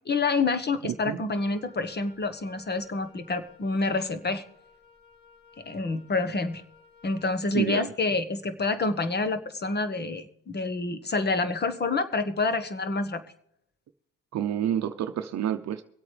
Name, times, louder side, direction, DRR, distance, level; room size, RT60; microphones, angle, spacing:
voice 1, 0.0-4.4 5.6-6.6 7.0-13.2, left 3 dB, 35° left, 11 dB, 1.3 m, -28 dB
Wind instrument woodwind instrument, 1.3-7.5, left 4 dB, 15° left, 3.6 m, -56 dB
voice 2, 7.5-7.9 14.3-15.8, right 10 dB, 60° right, 8 dB, 0.7 m, -28 dB
24.0 x 8.5 x 3.3 m, 0.76 s
cardioid pair, 90°, 30 cm